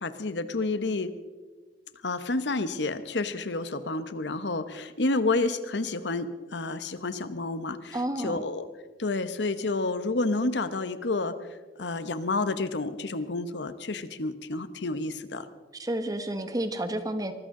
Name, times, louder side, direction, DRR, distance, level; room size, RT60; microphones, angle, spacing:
voice 1, 0.0-1.1 2.0-8.7 9.0-11.5 11.8-15.5, left 3 dB, 85° left, 12 dB, 1.0 m, -30 dB
voice 2, 7.9-8.4 15.7-17.3, right 1 dB, 20° right, 8 dB, 1.2 m, -30 dB
24.0 x 14.5 x 3.8 m, 1.4 s
head